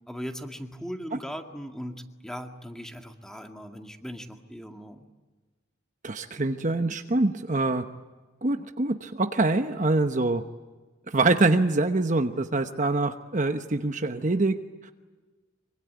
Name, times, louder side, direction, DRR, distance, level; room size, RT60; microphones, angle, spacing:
voice 1, 0.1-5.0, equal, 5° left, 4 dB, 2.0 m, -39 dB
voice 2, 6.0-7.8 8.4-10.4 11.1-14.6 14.8-14.9, right 2 dB, 40° right, 7 dB, 1.0 m, -25 dB
24.5 x 24.5 x 9.5 m, 1.3 s
head